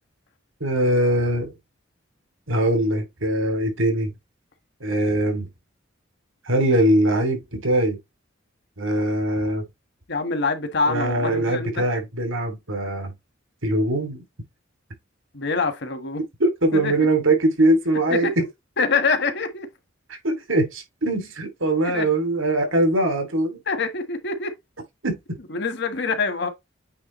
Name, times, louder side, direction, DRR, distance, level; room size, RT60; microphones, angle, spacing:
voice 1, 0.6-1.5 2.5-4.1 4.8-5.5 6.5-8.0 8.8-9.6 10.9-13.1 13.6-14.2 16.4-18.4 20.1-23.6 25.0-25.2, right 1 dB, 80° right, 2.7 m, -22 dB
voice 2, 10.1-11.7 15.3-16.2 16.7-17.1 18.1-18.3 18.8-19.7 21.8-22.1 23.7-24.5 25.5-26.5, left 4 dB, 60° left, 1.5 m, -25 dB
8.6 x 3.5 x 3.1 m
head